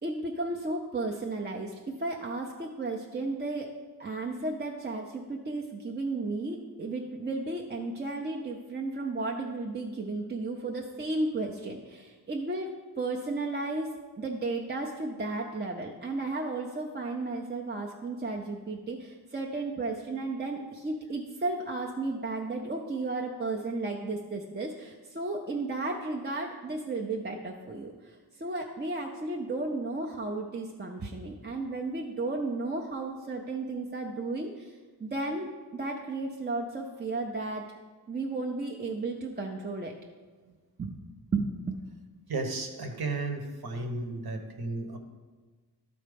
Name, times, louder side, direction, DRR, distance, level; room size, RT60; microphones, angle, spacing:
voice 1, 0.0-3.7 4.0-37.6 38.1-39.9 40.8-41.0 41.3-42.0, right 2 dB, 25° right, 0 dB, 0.5 m, -34 dB
voice 2, 42.3-45.0, right 3 dB, 65° right, 4 dB, 1.1 m, -34 dB
12.5 x 4.3 x 5.1 m, 1.4 s
wide cardioid pair, 160°, 40 cm